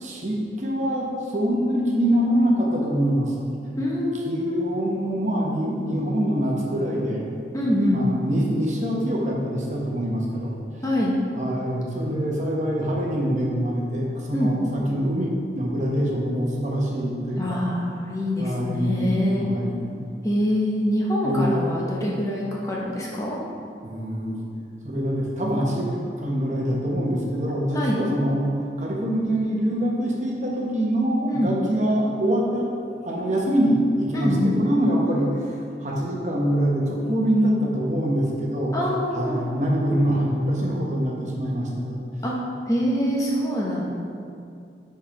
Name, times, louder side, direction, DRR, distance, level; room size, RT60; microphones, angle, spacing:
voice 1, 0.0-3.3 4.3-7.3 7.9-10.6 11.4-17.6 18.4-20.0 21.2-21.6 23.8-24.4 24.8-28.5 28.8-32.7 33.0-38.7 39.1-42.0 43.8-43.9, equal, 40° right, -3 dB, 0.9 m, -24 dB
voice 2, 3.8-4.6 7.5-8.1 10.8-11.1 14.3-14.5 17.4-19.5 20.2-23.4 27.7-28.0 31.3-31.5 34.1-34.6 38.7-39.4 42.2-42.3 42.7-43.8, left 1 dB, 20° left, -4 dB, 0.7 m, -25 dB
5.4 x 4.3 x 5.1 m, 2.5 s
head